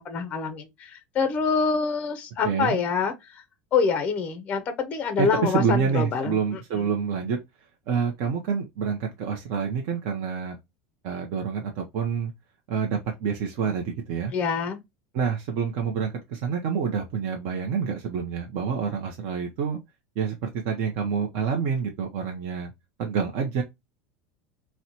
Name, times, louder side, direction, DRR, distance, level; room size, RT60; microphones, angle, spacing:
voice 1, 0.0-3.4 3.7-6.4 6.7-6.8 14.3-14.8, left 5 dB, 25° left, 0.5 m, -26 dB
voice 2, 2.4-2.8 5.2-7.4 7.9-10.6 11.0-12.3 12.7-14.3 15.1-19.8 20.2-22.7 23.0-23.6, right 6 dB, 45° right, 0.6 m, -27 dB
4.1 x 2.1 x 2.8 m
supercardioid pair, 160°, 6 cm